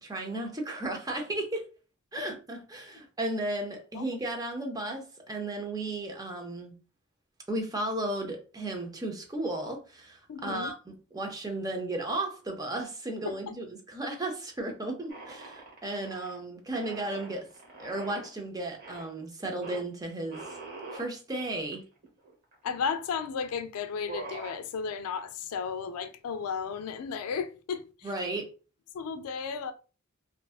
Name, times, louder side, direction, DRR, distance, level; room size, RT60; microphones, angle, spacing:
voice 1, 0.0-1.7 2.1-6.7 7.5-17.5 17.8-20.4 20.9-21.8 28.0-28.5, right 2 dB, 15° right, 0.5 m, -34 dB
voice 2, 10.3-10.7 13.2-13.4 22.6-28.1 28.9-29.7, left 6 dB, 85° left, 0.3 m, -34 dB
sound 1, 15.1-16.4 16.8-18.3 18.8-19.1 19.6-19.8 20.3-21.1 21.7-21.8 22.0-22.8 23.4-23.6 23.9-24.6, right 2 dB, 45° right, 0.9 m, -43 dB
2.6 x 2.3 x 2.3 m
head